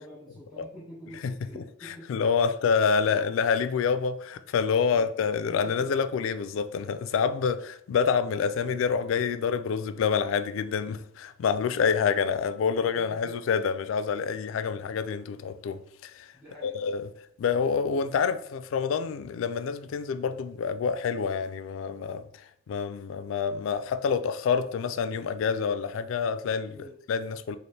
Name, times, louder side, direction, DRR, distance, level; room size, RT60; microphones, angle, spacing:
voice 1, 0.0-2.5 3.0-3.2 4.9-5.1 5.5-5.9 12.9-13.3 16.3-16.7 26.7-27.0, equal, ahead, 1.2 m, -47 dB
voice 2, 1.2-16.3 16.6-17.1 17.4-22.2 22.7-27.6, left 6 dB, 90° left, 0.3 m, -27 dB
4.1 x 2.5 x 3.2 m
head